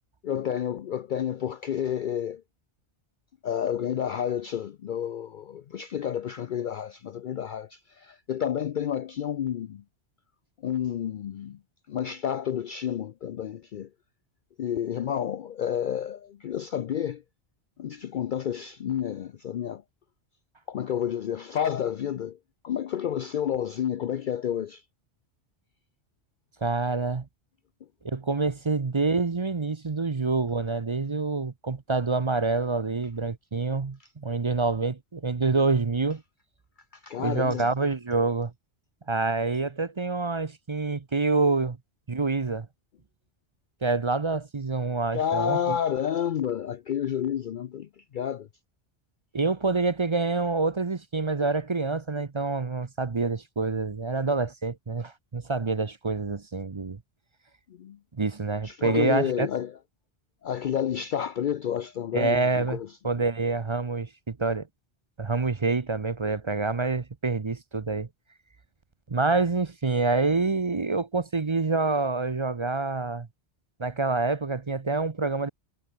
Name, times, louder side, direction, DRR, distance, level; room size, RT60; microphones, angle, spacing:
voice 1, 0.2-2.4 3.4-9.8 10.6-11.6 11.9-13.9 14.6-17.2 17.8-19.8 20.7-22.4 22.6-24.8 37.0-37.7 45.1-47.9 48.1-48.5 57.8-58.0 58.6-59.7 60.4-62.9, left 9 dB, 55° left, 0.6 m, -30 dB
voice 2, 26.6-27.3 28.0-36.2 37.2-38.5 39.1-41.8 42.1-42.7 43.8-45.8 49.3-57.0 58.2-59.5 62.1-62.8 63.0-64.7 65.2-68.1 69.1-73.3 73.8-75.5, right 3 dB, 30° right, 0.7 m, -27 dB
omnidirectional pair, 1.2 m